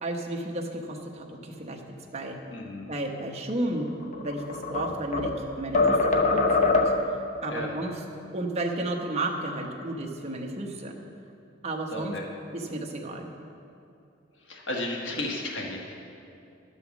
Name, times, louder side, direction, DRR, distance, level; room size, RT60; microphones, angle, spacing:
voice 1, 0.0-1.8 2.1-2.4 2.9-6.8 7.4-7.9 8.3-11.0 11.6-12.1 12.5-13.3, right 1 dB, 35° right, 1 dB, 1.0 m, -32 dB
voice 2, 2.5-2.9 7.5-7.7 11.9-12.2 14.5-15.9, left 2 dB, 65° left, -1 dB, 1.5 m, -33 dB
sound 1, 4.0-5.4 5.7-7.2, left 3 dB, 40° left, 0.8 m, -23 dB
11.0 x 5.7 x 7.0 m, 2.6 s
head